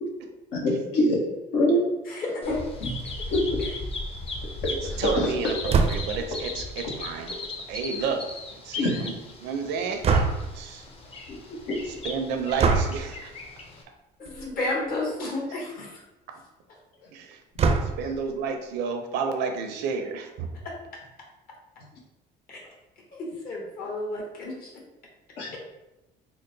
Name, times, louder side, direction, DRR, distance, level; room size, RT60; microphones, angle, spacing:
voice 1, 0.5-1.2 1.5-1.9 2.8-2.9 3.3-3.4 5.2-5.3 8.8-9.0 11.3-11.4 11.7-11.8 25.4-25.6, left 1 dB, 90° left, -3 dB, 1.1 m, -24 dB
voice 2, 2.1-2.7 14.2-15.9 22.5-22.6 23.1-24.7, left 2 dB, 60° left, -2 dB, 1.3 m, -31 dB
Bird vocalization bird call bird song, 2.4-13.8, left 2 dB, 35° left, 0.6 m, -37 dB
voice 3, 4.8-7.3 7.7-8.2 8.6-9.1 9.4-10.1 10.5-10.8 11.8-13.3 17.1-17.4 17.8-20.5, right 5 dB, 85° right, 5 dB, 0.6 m, -31 dB
sound 1, 5.7-6.2 10.0-10.6 12.6-13.0 14.3-14.5 14.9-15.0 15.2-15.3 17.6-18.2, right 4 dB, 40° right, 0.4 m, -23 dB
3.8 x 2.1 x 3.9 m, 0.96 s
cardioid pair, 110°, 17 cm